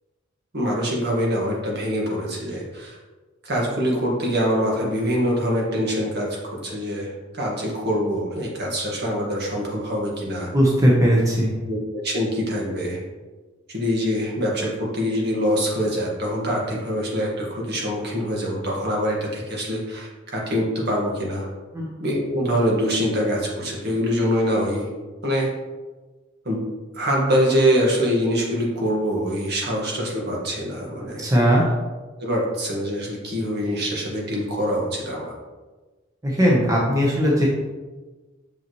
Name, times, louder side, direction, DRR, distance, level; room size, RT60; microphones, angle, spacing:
voice 1, 0.5-3.0 3.4-6.4 6.6-10.5 11.7-13.0 13.7-21.5 22.0-24.9 25.2-25.5 26.4-26.6 26.9-31.3 32.2-35.3, equal, 55° right, -2 dB, 1.7 m, -24 dB
voice 2, 10.5-11.5 21.7-21.9 31.2-31.7 36.2-37.5, equal, 15° right, -4 dB, 1.0 m, -18 dB
6.8 x 5.5 x 3.1 m, 1.3 s
head